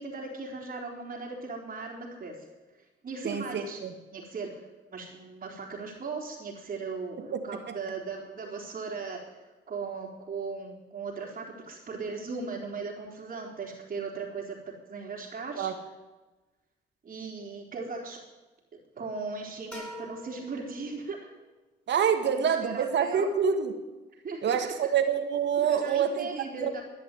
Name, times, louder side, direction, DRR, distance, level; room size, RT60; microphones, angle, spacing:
voice 1, 0.0-2.3 3.0-3.8 4.1-4.5 4.9-14.6 14.9-15.7 17.0-18.2 18.7-21.2 22.2-23.3 24.2-24.7 25.6-26.8, right 4 dB, 45° right, -5 dB, 3.9 m, -38 dB
voice 2, 3.2-3.9 7.2-7.8 15.6-15.8 21.9-23.7 24.4-26.7, right 7 dB, 65° right, 7 dB, 2.0 m, -27 dB
sound 1, 19.7-21.5, equal, 5° left, 6.7 m, -44 dB
12.5 x 10.5 x 9.3 m, 1.1 s
cardioid pair, 90°, 20 cm